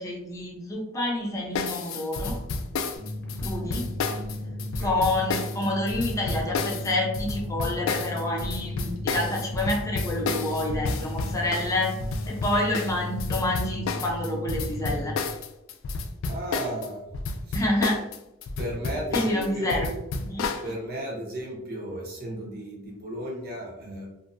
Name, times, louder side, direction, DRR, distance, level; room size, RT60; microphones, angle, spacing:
voice 1, 0.0-2.4 3.4-3.9 4.8-11.9 12.3-15.2 17.5-18.0 19.1-20.5, left 1 dB, 15° left, -2 dB, 0.6 m, -28 dB
sound 1, 1.5-16.9 17.1-20.7, left 4 dB, 85° left, 0.3 m, -31 dB
sound 2, 3.0-15.1, left 1 dB, 60° left, 0.6 m, -35 dB
voice 2, 4.6-5.1 16.2-17.0 17.5-17.6 18.6-19.8 20.6-24.1, equal, 50° right, -2 dB, 0.8 m, -34 dB
2.6 x 2.2 x 2.5 m, 0.90 s
head